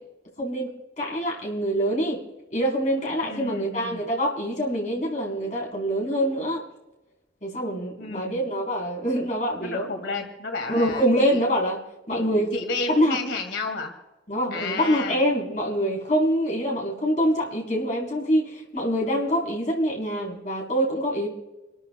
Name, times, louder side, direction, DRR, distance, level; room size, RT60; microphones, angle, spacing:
voice 1, 0.4-2.2 2.5-6.6 7.4-9.9 10.7-11.8 12.1-12.5 12.9-13.2 14.3-21.3, equal, 40° left, -2 dB, 4.0 m, -25 dB
voice 2, 3.2-4.0 8.0-8.4 9.6-11.4 12.1-13.9 14.5-15.2, left 3 dB, 90° left, 3 dB, 2.2 m, -32 dB
29.0 x 13.5 x 2.3 m, 1.1 s
head